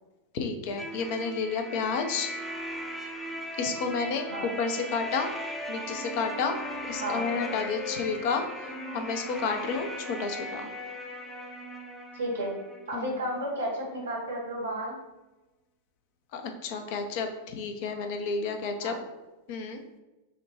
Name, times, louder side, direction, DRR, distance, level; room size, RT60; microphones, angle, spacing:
voice 1, 0.3-2.3 3.6-5.3 5.7-6.6 6.9-10.7 12.9-13.1 16.3-19.0 19.5-19.8, left 5 dB, 50° left, 5 dB, 0.6 m, -31 dB
sound 1, 0.8-13.4, equal, 5° left, 0.6 m, -38 dB
voice 2, 12.1-12.5 12.9-15.0 18.8-19.0, right 1 dB, 70° right, -2 dB, 1.3 m, -32 dB
6.4 x 2.2 x 3.0 m, 1.1 s
figure-of-eight pair, 90°, 0 cm